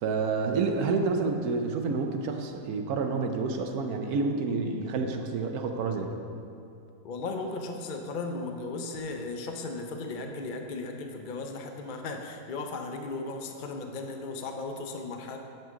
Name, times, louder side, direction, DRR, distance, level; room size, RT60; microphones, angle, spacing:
voice 1, 0.0-6.2, right 4 dB, 70° right, 5 dB, 1.1 m, -29 dB
voice 2, 7.0-15.4, left 3 dB, 60° left, 4 dB, 0.5 m, -36 dB
10.5 x 6.9 x 3.7 m, 2.5 s
omnidirectional pair, 1.7 m